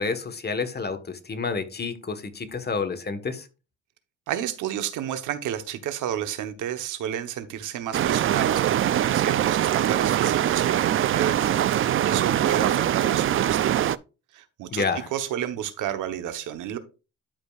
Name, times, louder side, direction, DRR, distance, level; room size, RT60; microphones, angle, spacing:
voice 1, 0.0-3.5 14.7-15.1, left 4 dB, 35° left, 1.4 m, -29 dB
voice 2, 4.3-13.9 14.3-14.8 15.1-16.8, right 10 dB, 85° right, 1.1 m, -31 dB
sound 1, 7.9-14.0, right 11 dB, 45° right, 0.4 m, -23 dB
12.0 x 5.2 x 2.4 m
cardioid pair, 90°, 30 cm